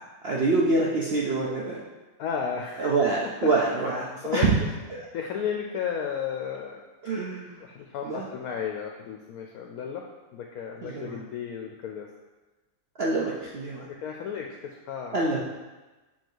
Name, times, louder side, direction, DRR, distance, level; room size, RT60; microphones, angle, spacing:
voice 1, 0.0-1.8 2.8-4.6 4.9-5.0 7.0-7.6 8.0-8.3 10.8-11.2 13.0-13.9 15.1-15.4, right 3 dB, 60° right, -4 dB, 0.6 m, -26 dB
voice 2, 2.2-2.9 3.2-3.5 4.2-4.7 5.1-6.8 7.6-10.0 10.3-12.1 13.8-15.2, left 7 dB, 70° left, 1 dB, 1.0 m, -33 dB
7.4 x 2.8 x 4.5 m, 1.2 s
omnidirectional pair, 1.8 m